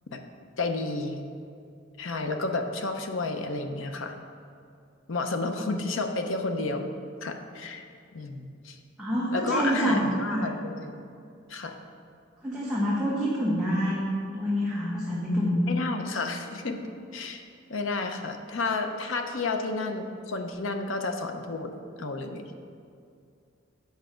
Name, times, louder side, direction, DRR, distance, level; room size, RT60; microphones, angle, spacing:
voice 1, 0.6-1.2 2.0-4.1 5.1-6.9 7.2-7.8 8.1-8.8 9.3-11.0 11.5-11.7 15.7-16.8 17.1-17.4 17.7-21.7 22.0-22.5, left 3 dB, 80° left, 5 dB, 0.7 m, -31 dB
voice 2, 9.0-10.5 12.4-15.7, equal, 5° right, -9 dB, 1.3 m, -27 dB
8.1 x 6.1 x 5.0 m, 2.5 s
head